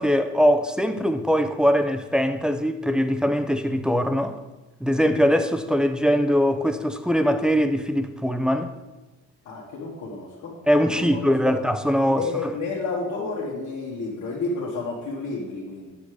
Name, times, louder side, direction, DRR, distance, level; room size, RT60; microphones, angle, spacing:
voice 1, 0.0-4.4 4.8-8.8 10.7-12.5, equal, 5° right, 0.7 m, -22 dB
voice 2, 9.5-10.6 11.1-11.6 12.0-15.9, left 3 dB, 80° left, 1.9 m, -31 dB
8.6 x 6.0 x 5.0 m
cardioid pair, 90°, 30 cm